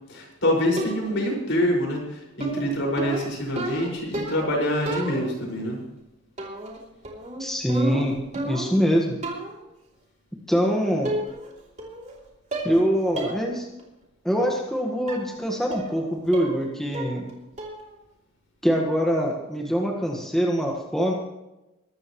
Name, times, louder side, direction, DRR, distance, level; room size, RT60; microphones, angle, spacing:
voice 1, 0.1-5.8, equal, 60° left, -1 dB, 5.7 m, -25 dB
sound 1, 0.8-1.3 2.4-4.6 4.9-5.5 6.4-6.8 7.0-8.8 9.2-9.6 10.5-10.6 11.0-11.5 11.8-12.2 12.5-12.8 13.2-13.4 13.8-13.9 15.1-15.3 15.7-16.0 16.3-16.7 16.9-17.3 17.6-17.9, right 1 dB, 35° right, 3.1 m, -32 dB
voice 2, 7.4-8.1 8.4-9.2 10.5-11.1 12.6-13.6 14.2-17.2 18.6-21.1, equal, ahead, -1 dB, 1.6 m, -24 dB
23.0 x 13.0 x 3.2 m, 0.97 s
head